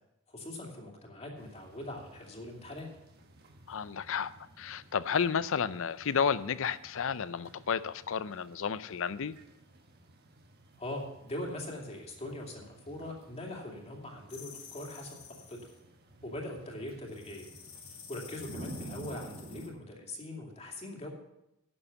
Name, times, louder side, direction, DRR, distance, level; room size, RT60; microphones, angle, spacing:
voice 1, 0.3-2.9 10.8-15.7 16.2-17.5 17.9-21.1, left 1 dB, 30° left, 0 dB, 2.5 m, -42 dB
sound 1, 1.4-19.7, right 1 dB, 50° right, 1.4 m, -53 dB
voice 2, 3.7-4.3 4.6-9.3, left 6 dB, 70° left, 16 dB, 0.5 m, -32 dB
sound 2, 14.3-15.8 17.1-19.7, left 7 dB, 90° left, 2.2 m, -50 dB
11.0 x 7.1 x 7.1 m, 0.88 s
head